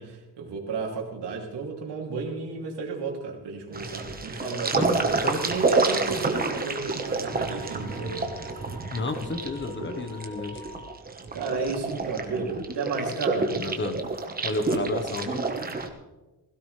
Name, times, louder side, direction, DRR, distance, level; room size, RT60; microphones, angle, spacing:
voice 1, 0.0-8.3 11.3-13.5, right 4 dB, 85° right, 1 dB, 2.9 m, -32 dB
sound 1, 3.7-15.9, right 3 dB, 20° right, 1.2 m, -29 dB
voice 2, 4.7-5.4 8.9-10.6 13.3-14.0 14.4-15.4, left 2 dB, 30° left, 7 dB, 1.2 m, -32 dB
Wind instrument woodwind instrument, 7.2-11.1, left 1 dB, 80° left, 4.5 m, -48 dB
16.5 x 16.5 x 3.3 m, 1.1 s
wide cardioid pair, 155°, 40 cm